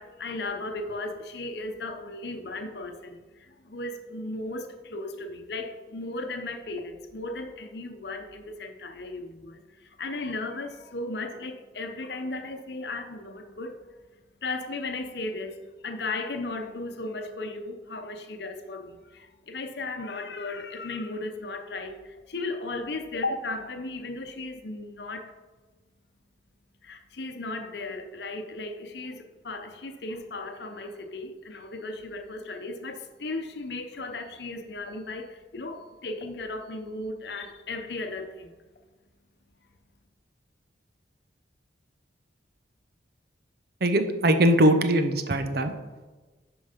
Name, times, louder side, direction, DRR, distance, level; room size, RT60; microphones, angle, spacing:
voice 1, 0.0-25.3 26.8-38.5, left 2 dB, 60° left, 6 dB, 0.8 m, -36 dB
voice 2, 43.8-45.7, right 1 dB, 55° right, 8 dB, 0.7 m, -21 dB
11.0 x 4.7 x 5.1 m, 1.3 s
head